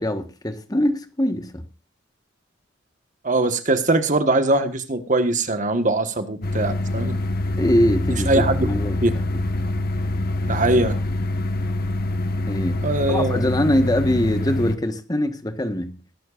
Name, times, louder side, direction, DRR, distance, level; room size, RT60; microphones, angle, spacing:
voice 1, 0.0-1.7 7.6-9.4 12.5-16.0, left 1 dB, 20° left, 1.3 m, -23 dB
voice 2, 3.2-7.1 8.3-8.7 9.0-9.1 10.5-11.0 12.8-13.4, right 2 dB, 40° right, 1.4 m, -21 dB
sound 1, 6.4-14.8, left 2 dB, 50° left, 1.4 m, -25 dB
22.0 x 12.0 x 2.5 m
head